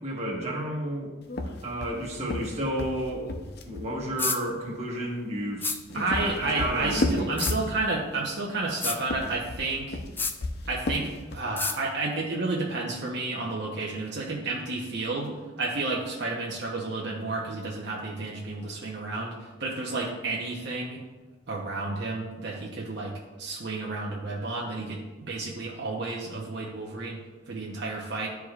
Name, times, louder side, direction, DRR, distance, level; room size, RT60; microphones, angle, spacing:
voice 1, 0.0-1.1 1.6-3.4 3.6-7.5, right 1 dB, 35° right, -3 dB, 1.4 m, -32 dB
sound 1, 1.3-3.9 5.6-8.1 9.0-11.6, left 2 dB, 60° left, 0.6 m, -32 dB
sound 2, 4.2-4.4 5.6-5.8 7.4-7.6 8.8-9.0 10.2-10.4 11.6-11.8, left 4 dB, 10° left, 0.3 m, -28 dB
voice 2, 5.9-10.0 10.7-21.0 21.5-28.3, right 3 dB, 65° right, -3 dB, 0.9 m, -31 dB
11.0 x 4.8 x 2.4 m, 1.2 s
head